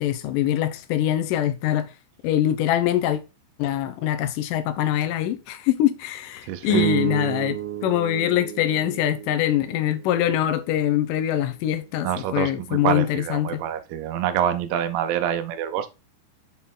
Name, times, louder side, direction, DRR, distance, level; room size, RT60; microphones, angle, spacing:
voice 1, 0.0-1.9 2.2-3.2 3.6-7.6 7.8-13.6, left 12 dB, 90° left, 1.9 m, -23 dB
voice 2, 6.4-6.9 12.0-15.9, right 10 dB, 90° right, 2.7 m, -26 dB
sound 1, 6.7-11.2, right 14 dB, 75° right, 2.0 m, -31 dB
7.0 x 4.2 x 3.6 m
omnidirectional pair, 4.6 m